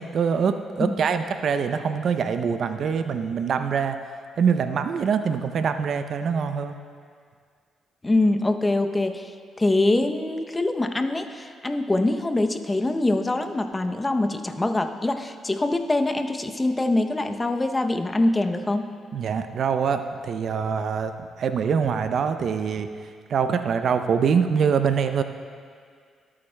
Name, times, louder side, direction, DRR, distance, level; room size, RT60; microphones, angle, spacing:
voice 1, 0.0-4.0 4.4-6.8 19.1-21.1 21.4-22.9 23.3-25.2, right 6 dB, 60° right, 8 dB, 0.5 m, -24 dB
voice 2, 8.0-9.3 9.6-18.9, left 2 dB, 20° left, 7 dB, 0.6 m, -24 dB
22.0 x 8.6 x 2.2 m, 2.1 s
cardioid pair, 90°, 0 cm